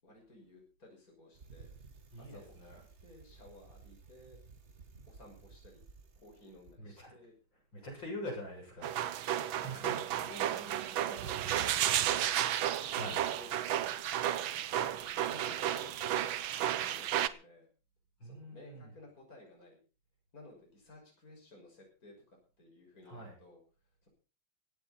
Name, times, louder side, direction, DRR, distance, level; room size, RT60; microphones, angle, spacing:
voice 1, 0.0-1.7 2.2-2.5 3.0-4.4 5.1-5.8 6.1-7.3 8.8-9.1 9.4-17.7 18.2-19.8 20.3-23.6 24.0-24.1, left 2 dB, 45° left, 0 dB, 6.9 m, -55 dB
Bicycle, 1.3-6.8, right 4 dB, 40° right, 1.5 m, -56 dB
voice 2, 2.1-2.8 6.8-7.1 7.5-9.0 9.6-10.0 10.5-11.0 12.9-13.2 18.2-18.9 23.0-23.4, equal, 65° left, 0 dB, 8.2 m, -44 dB
sound 1, 8.8-17.3, right 11 dB, 80° right, 1.7 m, -33 dB
17.0 x 15.0 x 4.4 m, 0.36 s
omnidirectional pair, 2.2 m